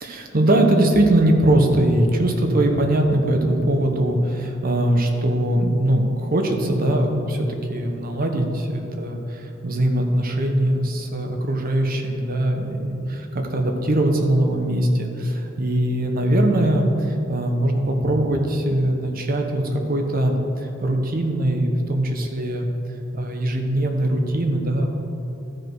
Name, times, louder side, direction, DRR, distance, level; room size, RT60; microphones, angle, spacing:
voice 1, 0.0-22.7 23.1-24.9, right 1 dB, 45° right, 3 dB, 1.0 m, -21 dB
13.0 x 5.2 x 4.7 m, 2.9 s
head